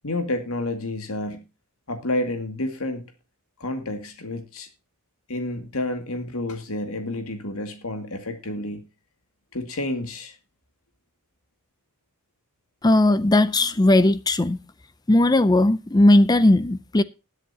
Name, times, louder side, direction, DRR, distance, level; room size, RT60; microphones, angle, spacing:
voice 1, 0.0-1.4 1.9-3.0 3.6-4.7 5.3-8.9 9.5-10.4, left 1 dB, 75° left, 2.2 m, -29 dB
voice 2, 12.8-14.6 15.1-17.0, left 1 dB, 20° left, 0.5 m, -17 dB
20.5 x 7.9 x 2.8 m
head